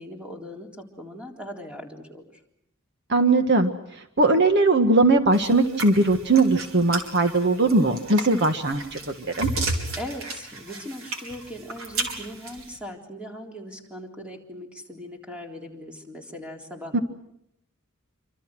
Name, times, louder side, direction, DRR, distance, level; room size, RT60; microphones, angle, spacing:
voice 1, 0.0-2.3 10.0-17.0, equal, 5° right, 1 dB, 3.7 m, -39 dB
voice 2, 3.1-3.7 4.2-9.5 16.9-17.0, right 2 dB, 55° right, 6 dB, 1.7 m, -20 dB
sound 1, 5.3-12.8, right 2 dB, 75° right, 4.9 m, -33 dB
27.5 x 26.0 x 6.2 m, 0.78 s
head